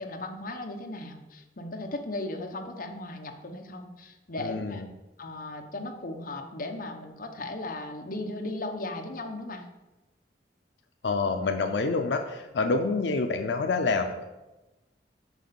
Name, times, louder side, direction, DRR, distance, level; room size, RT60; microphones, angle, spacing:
voice 1, 0.0-4.8 5.2-9.6, left 2 dB, 50° left, 3 dB, 1.0 m, -36 dB
voice 2, 4.4-4.9 11.0-14.2, left 3 dB, 85° left, 5 dB, 0.5 m, -27 dB
6.2 x 5.3 x 6.9 m, 1.1 s
head